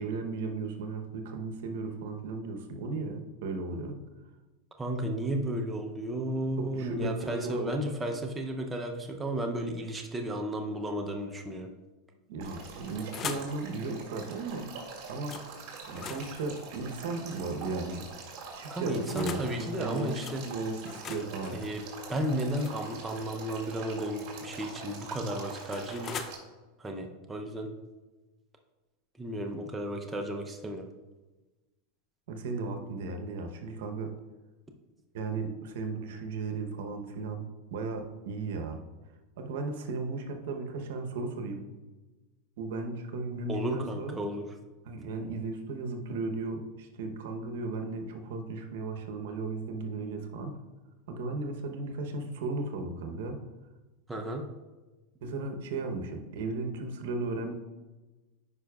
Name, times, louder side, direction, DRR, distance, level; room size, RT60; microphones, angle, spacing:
voice 1, 0.0-4.0 6.6-7.7 12.3-14.7 15.1-15.4 15.9-18.1 18.5-21.6 32.3-34.1 35.1-37.4 37.7-38.8 39.4-41.6 42.6-44.2 44.8-50.6 51.1-53.4 55.2-57.5, right 3 dB, 75° right, 5 dB, 0.9 m, -35 dB
voice 2, 4.8-11.7 18.7-20.4 21.5-21.8 22.1-26.2 26.8-27.7 29.2-30.9 43.5-44.5 54.1-54.5, right 1 dB, 10° right, 2 dB, 0.6 m, -33 dB
Male speech man speaking / Stream / Trickle dribble, 12.4-26.4, right 4 dB, 50° right, 2.1 m, -44 dB
sound 1, 12.6-13.6 15.3-15.5 15.8-17.7 18.5-19.5 20.2-20.4 20.8-23.5 24.7-26.3, left 6 dB, 30° left, 0.5 m, -43 dB
9.6 x 5.1 x 2.4 m, 1.2 s
supercardioid pair, 130°, 0 cm